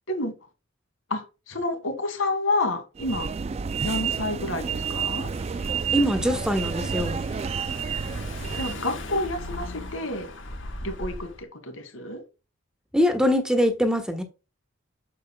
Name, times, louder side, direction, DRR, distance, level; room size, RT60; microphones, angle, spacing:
voice 1, 1.1-3.3 3.8-5.3 8.6-10.3 10.8-12.2, left 2 dB, 85° left, 2.5 m, -29 dB
sound 1, 3.0-8.9, right 6 dB, 30° right, 0.3 m, -30 dB
Car / Engine, 4.6-11.4, left 2 dB, 70° left, 1.5 m, -39 dB
voice 2, 5.9-7.2 12.9-14.2, equal, 5° right, 1.2 m, -23 dB
8.9 x 6.9 x 2.3 m
head